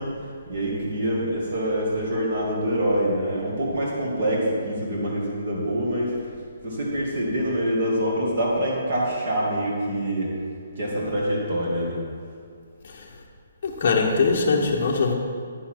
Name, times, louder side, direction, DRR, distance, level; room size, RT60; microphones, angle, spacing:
voice 1, 0.0-6.4 6.6-10.4 10.8-12.0, equal, 35° right, -4 dB, 2.1 m, -25 dB
voice 2, 13.6-15.1, left 4 dB, 35° left, -3 dB, 1.0 m, -22 dB
10.0 x 6.9 x 4.5 m, 2.2 s
hypercardioid pair, 180°, 0 cm